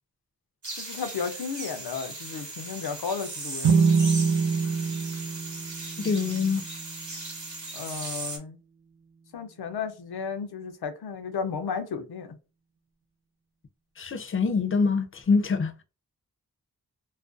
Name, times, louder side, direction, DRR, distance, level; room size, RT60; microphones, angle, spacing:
sound 1, 0.6-8.4, right 2 dB, 50° right, 0.8 m, -38 dB
voice 1, 0.8-3.7 7.7-8.6 9.3-12.3, left 6 dB, 85° left, 0.5 m, -33 dB
sound 2, 3.6-7.2, right 5 dB, 85° right, 0.6 m, -25 dB
voice 2, 6.0-6.6 14.0-15.7, left 4 dB, 35° left, 0.4 m, -25 dB
2.4 x 2.2 x 2.4 m
wide cardioid pair, 45°, 37 cm